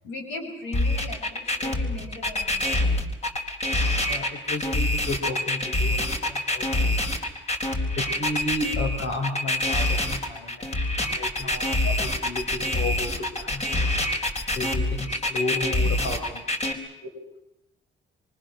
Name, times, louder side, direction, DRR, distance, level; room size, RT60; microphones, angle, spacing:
voice 1, 0.0-2.9 11.8-11.9 17.0-17.1, left 2 dB, 90° left, 2 dB, 7.3 m, -37 dB
sound 1, 0.7-16.7, left 1 dB, 35° left, 4.2 m, -25 dB
voice 2, 4.1-6.0 6.3-6.9 8.0-10.7 11.2-13.1 13.4-13.9 14.5-16.4, left 2 dB, 70° left, 2 dB, 5.0 m, -33 dB
27.0 x 24.5 x 6.7 m, 0.87 s
cardioid pair, 90°, 20 cm